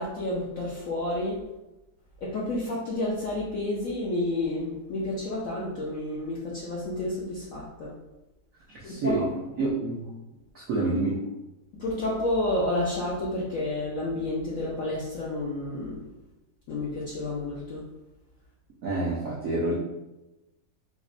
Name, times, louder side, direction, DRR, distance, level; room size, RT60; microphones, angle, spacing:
voice 1, 0.0-1.4 2.2-7.9 8.8-9.2 11.8-16.0 16.7-17.8, left 1 dB, 75° left, -5 dB, 0.7 m, -30 dB
voice 2, 8.7-9.3 9.6-10.1 10.5-11.3 18.8-19.7, right 2 dB, 75° right, -6 dB, 0.7 m, -28 dB
4.9 x 2.1 x 2.5 m, 0.99 s
omnidirectional pair, 2.1 m